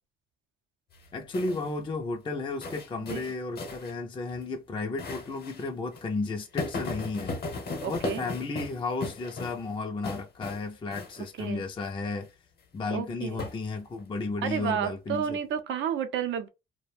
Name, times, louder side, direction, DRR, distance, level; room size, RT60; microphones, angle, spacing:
sound 1, 0.9-1.7 2.6-3.9 4.3-4.4 5.0-5.7 5.9-6.0 6.6-9.7 10.0-10.6 10.9-11.3 13.4-14.0, left 3 dB, 50° left, 0.8 m, -36 dB
voice 1, 1.1-12.3 12.7-15.4, left 3 dB, 25° left, 0.4 m, -33 dB
voice 2, 7.8-8.2 11.4-11.6 12.9-13.5 14.4-16.5, right 8 dB, 70° right, 0.6 m, -31 dB
2.4 x 2.1 x 3.2 m
cardioid pair, 90°, 20 cm